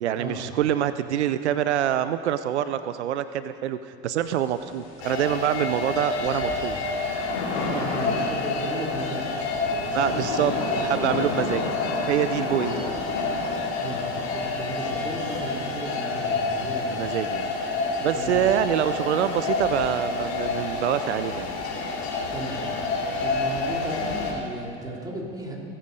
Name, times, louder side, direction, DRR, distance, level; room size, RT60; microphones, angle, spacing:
voice 1, 0.0-6.8 9.9-10.5 10.8-11.7 12.1-12.9 16.9-17.5 18.0-21.5, right 10 dB, 90° right, 12 dB, 0.5 m, -25 dB
Thunder / Rain, 4.2-22.4, left 3 dB, 90° left, 2.5 m, -36 dB
sound 1, 5.0-24.3, left 3 dB, 75° left, 3.3 m, -29 dB
voice 2, 7.5-9.4 9.8-11.1 12.5-12.8 13.8-17.1 18.1-18.4 22.3-22.6 23.2-25.6, right 1 dB, 10° right, -2 dB, 3.2 m, -35 dB
19.0 x 8.8 x 5.3 m, 2.6 s
hypercardioid pair, 85°, 33 cm